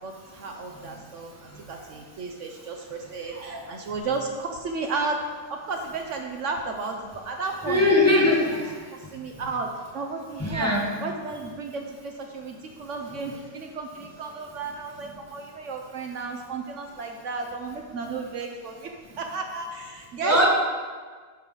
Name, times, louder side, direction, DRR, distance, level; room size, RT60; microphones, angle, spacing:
voice 1, 0.0-5.2 5.5-7.9 8.4-8.5 8.9-9.7 9.9-18.9 19.2-20.5, right 4 dB, 65° right, 3 dB, 0.9 m, -33 dB
voice 2, 7.7-8.8 10.4-10.9 20.2-20.5, left 1 dB, 10° left, -3 dB, 0.9 m, -21 dB
11.5 x 4.8 x 3.8 m, 1.5 s
omnidirectional pair, 1.5 m